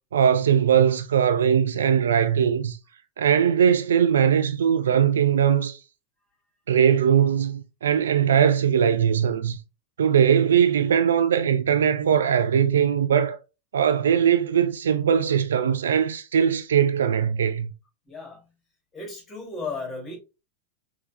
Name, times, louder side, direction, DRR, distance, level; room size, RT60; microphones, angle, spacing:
voice 1, 0.1-2.8 3.2-5.8 6.7-9.6 10.0-13.4 13.7-17.7, right 8 dB, 65° right, 0.4 m, -20 dB
voice 2, 18.1-18.5 18.9-20.2, left 3 dB, 10° left, 2.6 m, -35 dB
5.5 x 3.2 x 2.3 m
figure-of-eight pair, 90°, 0 cm